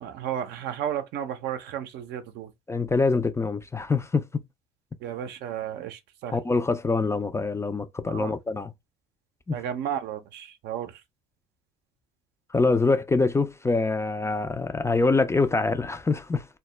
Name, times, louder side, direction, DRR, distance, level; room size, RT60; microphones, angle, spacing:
voice 1, 0.0-2.5 5.0-6.3 8.1-8.3 9.5-10.9, right 9 dB, 65° right, 0.5 m, -33 dB
voice 2, 2.7-4.4 6.3-8.7 9.5-9.6 12.5-16.5, left 3 dB, 15° left, 0.3 m, -25 dB
2.2 x 2.0 x 3.1 m
hypercardioid pair, 70°, 19 cm